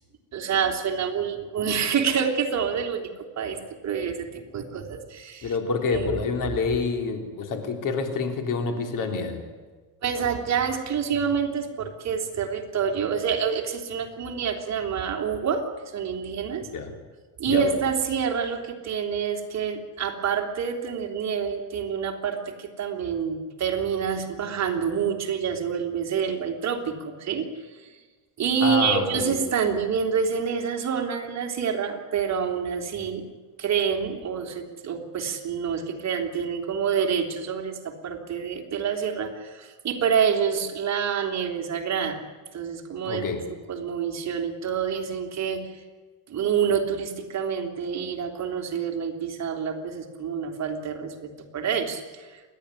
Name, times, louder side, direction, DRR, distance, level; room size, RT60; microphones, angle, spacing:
voice 1, 0.3-3.6 3.8-5.5 5.9-6.0 10.0-16.7 17.4-27.5 27.8-27.9 28.4-33.2 33.6-42.2 42.5-43.2 43.7-45.7 46.3-52.4, right 7 dB, 40° right, 3 dB, 3.2 m, -27 dB
voice 2, 5.4-9.4 16.7-16.9 17.5-17.7 28.6-29.3 43.1-43.4, left 4 dB, 50° left, 5 dB, 3.6 m, -27 dB
29.0 x 11.5 x 9.8 m, 1.4 s
cardioid pair, 115°, 41 cm